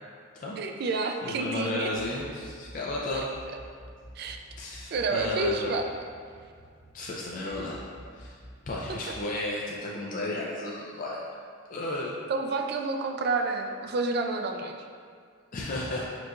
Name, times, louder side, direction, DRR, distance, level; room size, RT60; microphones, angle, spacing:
voice 1, 0.6-1.9 4.2-4.4 4.9-5.9 8.9-9.0 12.3-14.8, right 3 dB, 50° right, 4 dB, 0.3 m, -29 dB
voice 2, 1.2-3.3 4.6-5.7 6.9-7.8 8.1-8.4 8.7-11.2 11.7-12.1 15.5-16.1, left 2 dB, 40° left, -4 dB, 0.4 m, -33 dB
sound 1, 1.9-9.2, equal, 85° right, 1.1 m, -48 dB
4.6 x 3.8 x 2.5 m, 2.1 s
head